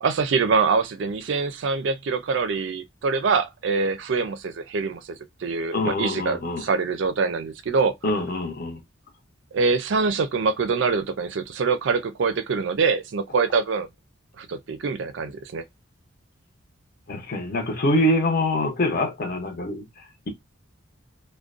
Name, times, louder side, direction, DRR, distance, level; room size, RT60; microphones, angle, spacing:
voice 1, 0.0-7.9 9.5-13.9 14.4-15.6, right 4 dB, 60° right, 0.4 m, -24 dB
voice 2, 5.7-6.7 8.0-8.8 17.1-20.3, left 1 dB, 45° left, 0.7 m, -25 dB
2.4 x 2.1 x 2.4 m
head